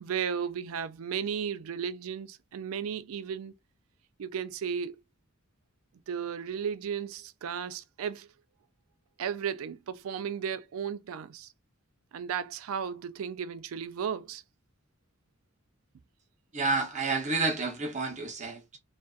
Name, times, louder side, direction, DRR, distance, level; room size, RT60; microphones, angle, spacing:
voice 1, 0.0-3.5 4.2-5.0 6.1-8.3 9.2-11.5 12.1-14.4, right 7 dB, 90° right, 0.4 m, -34 dB
voice 2, 16.5-18.8, right 3 dB, 35° right, 0.8 m, -30 dB
2.5 x 2.4 x 2.2 m
head